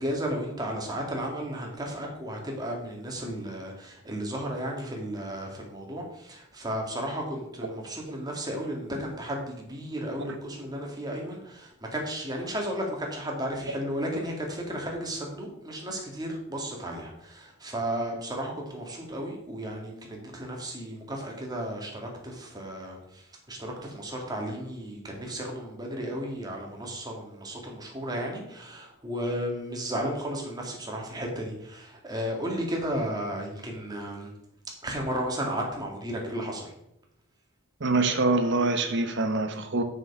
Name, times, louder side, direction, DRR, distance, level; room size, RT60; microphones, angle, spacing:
voice 1, 0.0-34.3 34.8-36.7, equal, 20° right, 0 dB, 2.0 m, -34 dB
voice 2, 37.8-39.8, right 3 dB, 60° right, 7 dB, 1.1 m, -25 dB
7.5 x 6.3 x 5.5 m, 0.80 s
head